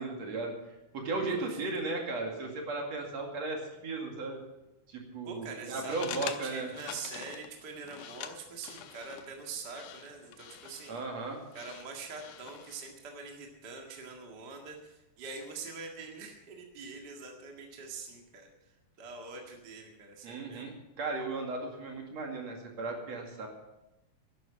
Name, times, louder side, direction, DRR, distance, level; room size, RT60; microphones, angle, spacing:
voice 1, 0.0-4.4 4.9-6.7 10.9-11.4 20.2-23.5, right 3 dB, 60° right, 1 dB, 3.4 m, -36 dB
voice 2, 1.3-1.6 5.3-11.0 11.5-18.5 19.0-20.7, right 4 dB, 35° right, 1 dB, 2.2 m, -44 dB
sound 1, 5.6-12.9, left 11 dB, 80° left, 2.2 m, -46 dB
12.0 x 11.5 x 7.5 m, 0.95 s
omnidirectional pair, 3.6 m